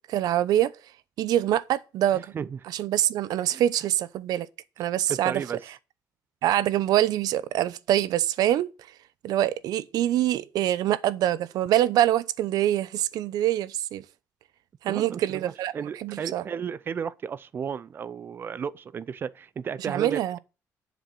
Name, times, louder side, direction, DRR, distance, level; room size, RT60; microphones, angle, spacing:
voice 1, 0.1-0.7 1.2-2.3 2.7-4.5 4.8-5.4 6.4-8.7 9.2-14.0 14.8-15.7 16.0-16.4 19.8-20.4, right 12 dB, 85° right, 0.8 m, -24 dB
voice 2, 5.1-5.6 14.9-20.4, right 7 dB, 35° right, 0.5 m, -34 dB
11.5 x 7.0 x 7.6 m
cardioid pair, 175°, 6 cm